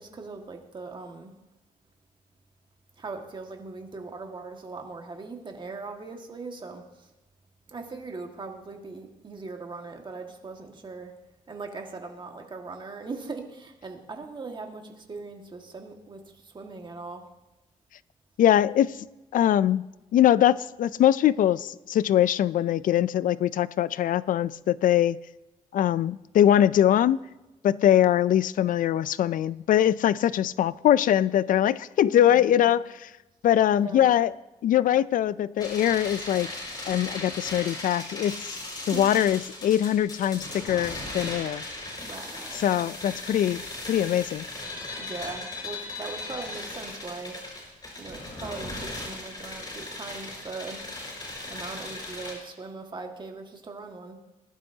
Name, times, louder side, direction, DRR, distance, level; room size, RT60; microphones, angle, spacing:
voice 1, 0.0-1.3 3.0-7.1 7.7-11.1 11.5-17.2 32.1-32.8 33.7-34.2 38.8-39.1 42.0-42.6 45.0-47.4 48.0-50.8 51.5-54.2, right 3 dB, 35° right, 2 dB, 1.8 m, -40 dB
voice 2, 18.4-18.9 19.3-19.8 20.1-25.2 25.7-27.2 27.6-32.9 33.4-34.3 34.6-36.5 36.9-38.6 38.9-41.6 42.5-43.6 43.9-44.5, left 11 dB, 70° left, 18 dB, 0.4 m, -22 dB
sound 1, 35.6-52.3, left 2 dB, 30° left, 5.0 m, -37 dB
19.0 x 11.5 x 2.8 m, 1.0 s
cardioid pair, 105°, 14 cm